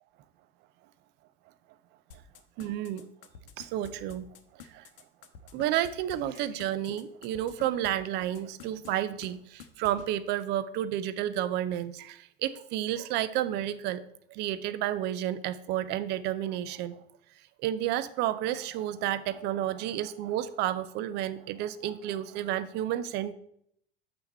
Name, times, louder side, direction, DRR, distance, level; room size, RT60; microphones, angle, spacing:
sound 1, 2.1-7.9 8.2-8.9 9.2-9.3 9.6-10.1, left 8 dB, 65° left, 0.8 m, -48 dB
voice 1, 2.6-3.1 3.6-4.2 4.7-4.9 5.5-14.0 14.3-17.0 17.6-23.3, right 12 dB, 35° right, 15 dB, 0.5 m, -31 dB
6.9 x 5.7 x 4.1 m, 0.72 s
figure-of-eight pair, 80°, 30 cm